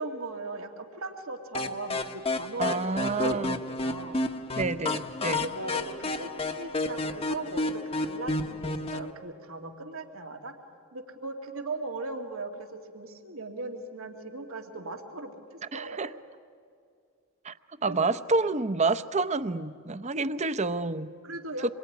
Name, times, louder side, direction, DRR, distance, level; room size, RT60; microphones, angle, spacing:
voice 1, 0.0-2.9 3.2-4.2 5.2-10.5 10.9-15.4 15.7-16.1 17.9-18.0 21.2-21.7, right 2 dB, 90° right, 3 dB, 2.4 m, -38 dB
sound 1, 1.5-9.1, left 2 dB, 30° left, 0.9 m, -31 dB
voice 2, 2.6-3.5 4.6-5.5 15.7-16.1 17.4-17.5 17.8-21.1 21.6-21.7, right 3 dB, 35° right, 13 dB, 0.7 m, -28 dB
26.5 x 22.5 x 9.4 m, 2.2 s
head